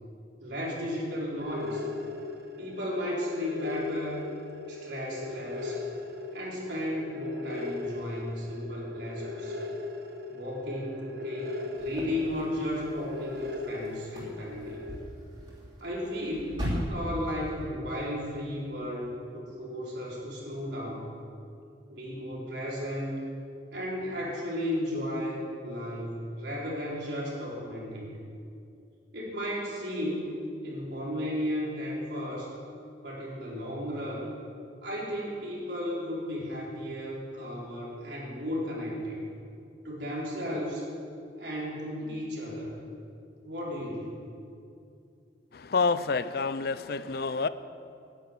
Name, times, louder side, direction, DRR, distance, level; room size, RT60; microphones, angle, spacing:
voice 1, 0.4-1.8 2.6-4.2 4.7-5.8 6.3-9.6 10.3-14.8 15.8-21.1 21.9-23.2 23.7-28.2 29.1-30.3 30.6-32.5 33.0-34.3 34.8-39.2 39.8-40.9 41.4-42.8 43.4-44.2, equal, 80° right, -4 dB, 3.7 m, -34 dB
sound 1, 1.4-14.9, left 3 dB, 60° right, 1.2 m, -39 dB
sound 2, 11.8-17.7, equal, 30° right, 3.2 m, -39 dB
voice 2, 45.5-47.5, left 4 dB, 60° left, 14 dB, 0.5 m, -28 dB
10.5 x 9.1 x 8.8 m, 2.5 s
head